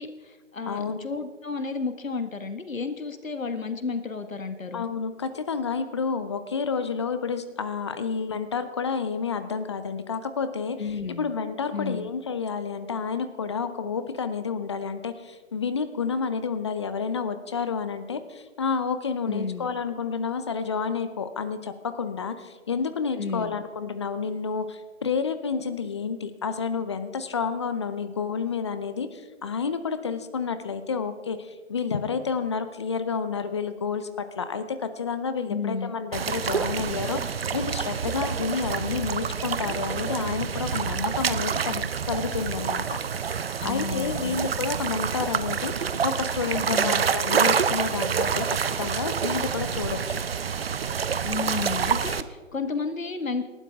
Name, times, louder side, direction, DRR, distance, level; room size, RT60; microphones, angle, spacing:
voice 1, 0.0-4.9 10.8-11.3 11.7-12.1 19.3-19.7 23.1-23.5 35.5-35.9 43.6-44.4 46.7-47.0 51.2-53.5, left 4 dB, 75° left, 9 dB, 1.8 m, -32 dB
voice 2, 0.7-1.0 4.7-10.8 11.2-43.0 43.6-50.2, left 5 dB, 20° left, 11 dB, 0.7 m, -30 dB
sound 1, 36.1-52.2, right 7 dB, 50° right, 0.7 m, -27 dB
27.0 x 12.0 x 3.6 m, 1.4 s
figure-of-eight pair, 150°, 40 cm